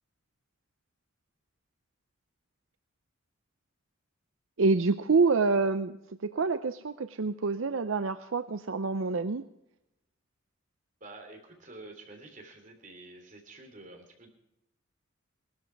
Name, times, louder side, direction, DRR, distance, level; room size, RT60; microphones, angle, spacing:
voice 1, 4.6-6.0 6.2-9.4, right 4 dB, 75° right, 11 dB, 0.6 m, -27 dB
voice 2, 11.0-14.3, right 2 dB, 40° right, 3 dB, 3.4 m, -49 dB
19.0 x 13.0 x 4.6 m, 0.87 s
head